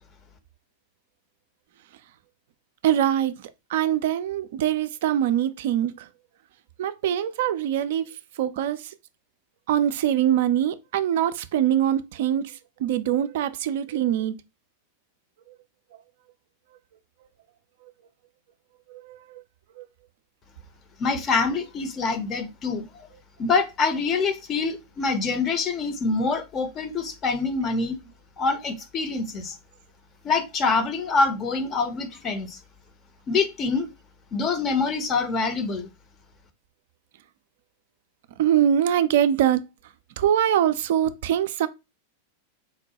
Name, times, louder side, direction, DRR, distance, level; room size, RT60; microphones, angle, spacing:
voice 1, 2.8-3.3 3.7-5.9 6.8-8.1 8.4-8.8 9.7-12.5 12.8-14.3 19.0-19.4 38.4-39.6 40.2-41.7, right 10 dB, 55° right, 0.3 m, -23 dB
voice 2, 21.0-23.1 23.4-28.0 28.4-29.6 30.2-32.6 33.3-33.9 34.3-35.9, left 4 dB, 30° left, 0.6 m, -25 dB
4.0 x 2.2 x 2.8 m
figure-of-eight pair, 90°, 0 cm